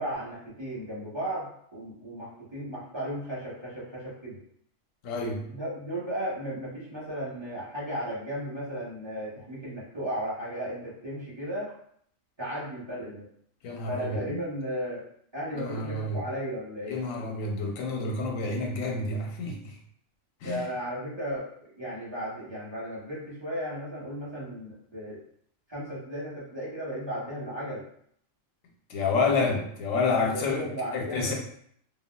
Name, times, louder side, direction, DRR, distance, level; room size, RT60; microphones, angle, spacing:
voice 1, 0.0-4.4 5.2-11.7 12.4-13.3 13.9-15.0 15.3-17.0 20.4-21.5 21.8-25.2 25.7-27.8 29.4-29.7 30.1-31.3, equal, 25° right, -8 dB, 0.8 m, -35 dB
voice 2, 5.0-5.4 13.6-14.4 15.5-16.2 16.9-19.8 20.4-20.7 28.9-31.3, left 3 dB, 90° left, 1 dB, 1.0 m, -29 dB
3.5 x 2.2 x 2.2 m, 0.66 s
omnidirectional pair, 1.3 m